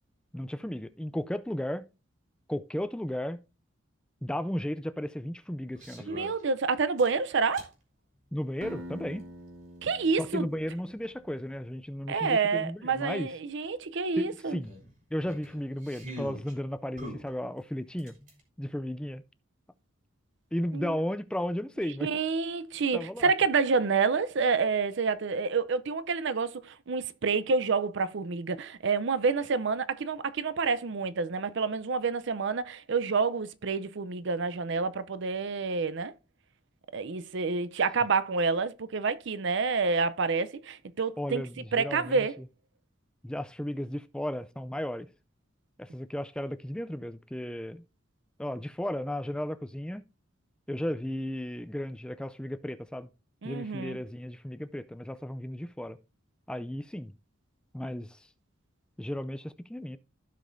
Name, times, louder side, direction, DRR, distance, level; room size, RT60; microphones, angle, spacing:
voice 1, 0.3-1.9 2.5-3.4 4.2-6.2 8.3-9.2 10.2-13.3 14.2-14.7 15.1-18.2 18.6-19.2 20.5-22.1 22.9-23.3 41.2-42.3 43.2-45.1 45.8-47.8 48.4-50.0 50.7-53.1 53.4-56.0 56.5-57.1 57.7-58.2 59.0-60.0, equal, 5° left, 0.4 m, -34 dB
sound 1, 5.7-6.4 7.0-7.7 9.2-9.3 12.0-12.1 12.3-12.4 12.9-13.0 14.7-16.5 17.0-18.4, equal, 40° right, 3.2 m, -43 dB
voice 2, 6.1-7.7 9.8-10.5 12.1-14.6 20.7-20.9 22.0-36.1 36.9-41.4 41.7-42.4 53.4-54.0, right 4 dB, 60° right, 0.6 m, -28 dB
Acoustic guitar, 8.6-11.6, equal, 80° right, 1.3 m, -46 dB
15.5 x 5.2 x 2.6 m
head